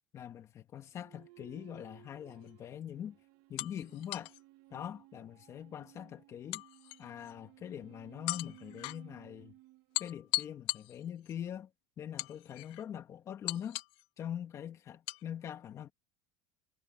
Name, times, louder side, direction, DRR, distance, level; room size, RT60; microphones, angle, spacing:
voice 1, 0.1-3.2 3.5-4.3 4.7-6.6 7.0-9.6 10.0-11.7 12.0-13.8 14.2-15.9, left 9 dB, 30° left, 2.1 m, -43 dB
sound 1, 0.9-10.6, right 19 dB, 55° right, 1.6 m, -60 dB
sound 2, 2.3-2.5 3.6-4.4 6.5-7.3 8.3-9.0 9.9-11.3 12.2-12.8 13.5-14.0 15.1-15.2, left 22 dB, 55° left, 0.7 m, -38 dB
cardioid pair, 165°, 11 cm